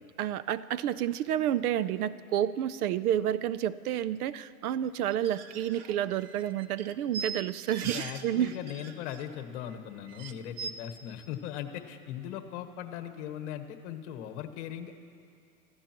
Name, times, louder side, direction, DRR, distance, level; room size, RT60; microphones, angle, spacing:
voice 1, 0.2-8.5, right 11 dB, 75° right, 16 dB, 0.6 m, -30 dB
sound 1, 5.1-8.3 8.5-9.4 9.7-9.8 10.1-10.7, right 6 dB, 45° right, 0.9 m, -41 dB
voice 2, 7.8-15.0, left 10 dB, 50° left, 6 dB, 1.3 m, -39 dB
28.5 x 15.0 x 3.0 m, 2.5 s
supercardioid pair, 150°, 45 cm